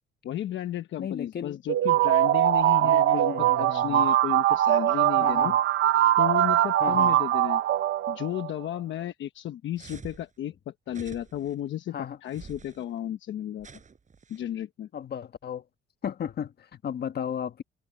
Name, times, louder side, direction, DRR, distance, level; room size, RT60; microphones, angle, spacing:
voice 1, 0.2-5.5 6.2-7.6 8.1-13.7 14.3-14.9, left 11 dB, 70° left, 1.0 m, -33 dB
voice 2, 1.0-1.6 2.8-4.1 5.2-5.6 6.8-7.2 11.9-12.2 14.9-15.6 16.0-17.6, left 8 dB, 55° left, 1.5 m, -34 dB
sound 1, 1.7-8.5, right 13 dB, 75° right, 0.9 m, -22 dB
sound 2, 9.8-10.3 10.9-11.5 12.3-12.8 13.6-14.4, right 5 dB, 40° right, 7.1 m, -47 dB
cardioid pair, 90°, 20 cm